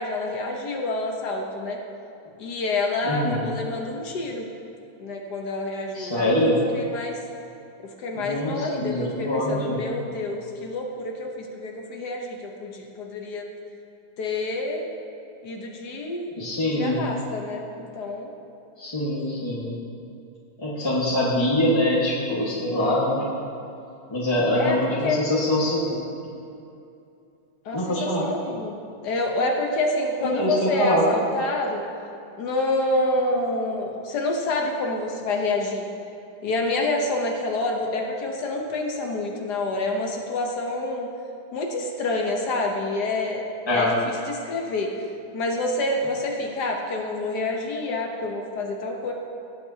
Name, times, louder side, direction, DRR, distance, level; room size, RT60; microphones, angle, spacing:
voice 1, 0.0-1.8 2.4-4.5 5.0-7.2 8.0-13.5 14.2-14.9 15.4-16.3 16.7-17.6 17.9-18.3 24.5-25.2 27.6-28.7 29.0-31.8 32.4-35.9 36.4-41.1 41.5-43.4 43.7-44.0 44.3-44.9 45.3-49.1, left 2 dB, 75° left, 1 dB, 1.6 m, -27 dB
voice 2, 3.0-3.5 5.9-6.6 8.1-9.8 16.4-17.0 18.8-19.8 20.6-23.2 24.1-26.0 27.7-28.2 30.2-31.1 43.7-43.9, left 1 dB, 15° left, -7 dB, 1.6 m, -24 dB
18.0 x 8.5 x 2.8 m, 2.7 s
omnidirectional pair, 1.8 m